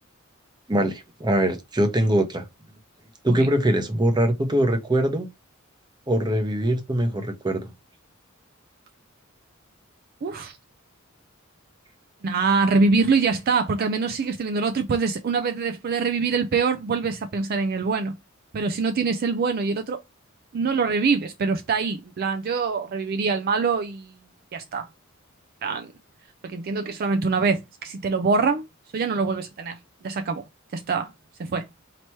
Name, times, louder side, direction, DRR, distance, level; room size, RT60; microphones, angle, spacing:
voice 1, 0.7-2.4 3.2-5.3 6.1-7.7, right 1 dB, 20° right, 0.8 m, -22 dB
voice 2, 10.2-10.6 12.2-18.2 18.5-20.0 20.5-24.1 24.5-24.9 25.6-25.9 26.4-28.6 28.9-29.8 30.0-30.4 30.7-31.1 31.4-31.7, right 4 dB, 45° right, 0.4 m, -24 dB
4.5 x 2.9 x 2.9 m
head